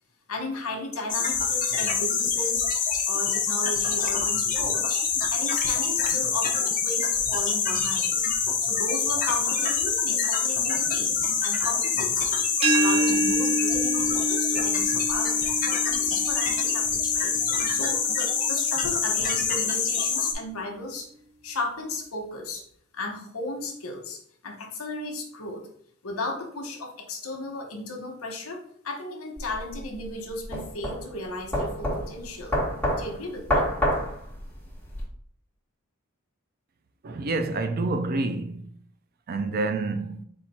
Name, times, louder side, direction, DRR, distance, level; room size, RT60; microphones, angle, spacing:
voice 1, 0.3-2.7 3.1-5.0 5.3-8.1 8.6-12.4 12.7-21.1 21.4-22.6 22.9-25.6 26.0-32.6 33.0-33.6, left 2 dB, 80° left, 1.0 m, -35 dB
sound 1, 1.1-20.3, left 6 dB, 40° left, 0.7 m, -25 dB
sound 2, 12.6-18.4, right 2 dB, 30° right, 1.1 m, -28 dB
sound 3, 29.4-35.0, equal, 10° left, 1.3 m, -28 dB
voice 2, 37.0-38.6 39.3-40.2, right 3 dB, 45° right, 0.4 m, -28 dB
4.3 x 2.4 x 4.2 m
head